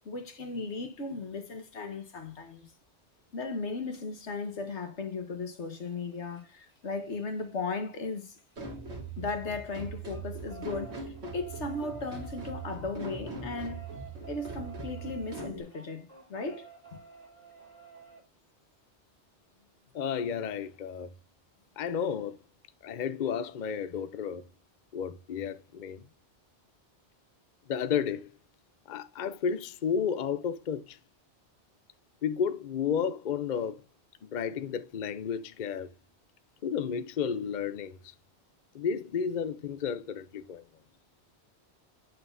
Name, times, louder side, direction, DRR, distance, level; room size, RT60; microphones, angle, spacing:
voice 1, 0.0-2.7 3.3-8.3 9.2-13.8 14.3-16.7, left 3 dB, 85° left, 1.7 m, -36 dB
sound 1, 3.9-4.0 5.7-9.2 9.5-18.2 19.9-20.0 20.3-20.4 20.7-20.8, right 6 dB, 50° right, 3.5 m, -52 dB
sound 2, 8.6-15.6, right 3 dB, 75° right, 2.7 m, -41 dB
voice 2, 19.9-21.1 21.8-22.4 22.8-24.4 24.9-26.0 27.7-28.3 28.9-31.0 32.2-33.8 34.2-35.9 36.6-38.1 38.7-40.6, left 7 dB, 50° left, 0.7 m, -32 dB
9.1 x 6.3 x 2.6 m
omnidirectional pair, 1.1 m